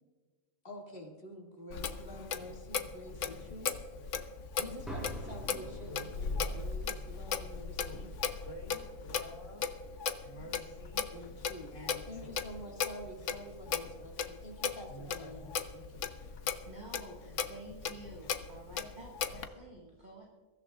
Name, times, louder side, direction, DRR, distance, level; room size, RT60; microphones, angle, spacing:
voice 1, 0.6-3.9 4.5-8.1 11.1-11.7 12.1-16.1, equal, 45° left, -1 dB, 2.5 m, -48 dB
Clock, 1.7-19.5, left 6 dB, 70° left, 1.1 m, -37 dB
sound 1, 4.9-8.8, right 1 dB, ahead, 4.3 m, -48 dB
voice 2, 5.5-6.6 7.8-8.0 8.4-9.6 10.2-11.1 11.7-12.4 14.9-15.5, equal, 25° left, -3 dB, 2.1 m, -49 dB
voice 3, 16.6-20.3, right 1 dB, 35° right, -3 dB, 2.1 m, -50 dB
22.5 x 14.5 x 2.5 m, 1.4 s
omnidirectional pair, 1.3 m